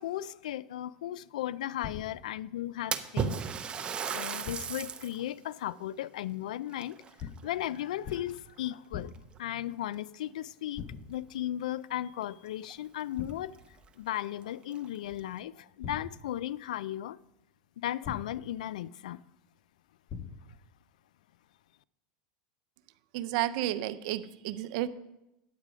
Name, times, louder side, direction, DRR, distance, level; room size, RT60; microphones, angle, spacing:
voice 1, 0.0-3.5 4.1-9.1 9.4-13.6 14.0-17.2 17.8-19.2, left 12 dB, 80° left, 0.3 m, -36 dB
sound 1, 1.8-2.4 4.4-4.9 7.2-7.6 8.0-8.5 8.9-9.4 10.8-11.3 13.2-13.7 15.8-16.5 18.0-18.6 20.1-20.7, left 6 dB, 35° left, 0.8 m, -43 dB
Splash splatter, 2.9-5.2 5.7-5.8 6.7-7.8 8.1-8.6 9.4-9.5 9.9-10.0 12.2-12.3 12.6-12.7 13.3-13.4 13.8-13.9 14.6-15.2, right 7 dB, 25° right, 0.8 m, -35 dB
voice 2, 23.1-24.9, right 14 dB, 65° right, 0.7 m, -32 dB
9.5 x 8.2 x 5.0 m
hypercardioid pair, 115°, 4 cm